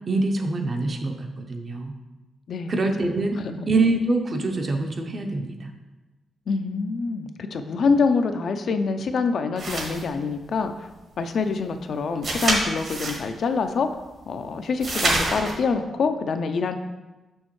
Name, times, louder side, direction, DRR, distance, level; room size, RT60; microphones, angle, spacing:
voice 1, 0.1-1.9 2.7-3.4 3.7-5.7, right 2 dB, 35° right, 4 dB, 0.6 m, -25 dB
voice 2, 6.5-10.9 11.2-13.9 14.3-16.8, left 4 dB, 55° left, 8 dB, 0.4 m, -25 dB
sound 1, 9.6-10.1 12.2-13.2 14.8-15.5, right 2 dB, 50° right, 1.3 m, -25 dB
6.2 x 6.1 x 3.1 m, 1.1 s
wide cardioid pair, 155°, 0 cm